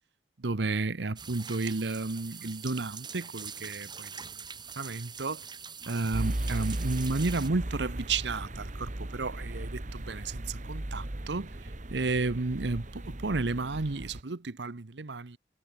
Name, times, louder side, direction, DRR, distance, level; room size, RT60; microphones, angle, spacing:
voice 1, 0.4-4.1 4.8-5.4 5.9-11.5 11.9-15.4, right 3 dB, 80° right, 1.0 m, -32 dB
sound 1, 1.2-7.5, right 6 dB, 25° right, 4.5 m, -43 dB
sound 2, 6.1-14.2, right 1 dB, 45° right, 1.5 m, -37 dB
head